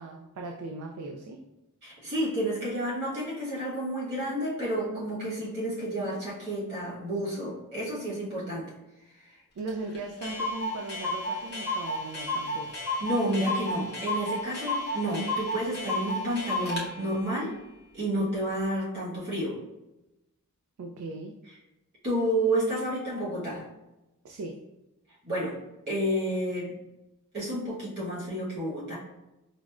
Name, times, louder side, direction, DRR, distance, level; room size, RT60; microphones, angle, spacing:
voice 1, 0.0-1.4 9.6-12.8 20.8-21.4 24.2-24.6, right 2 dB, 90° right, 1 dB, 0.3 m, -38 dB
voice 2, 1.8-8.7 13.0-17.5 17.9-19.5 22.0-23.6 25.2-25.5 25.9-26.8 27.3-29.0, right 1 dB, 50° right, -7 dB, 1.3 m, -30 dB
Clock, 9.7-9.8 9.9-10.0 10.2-16.9, left 1 dB, 50° left, 0.8 m, -32 dB
4.9 x 2.0 x 2.3 m, 0.97 s
head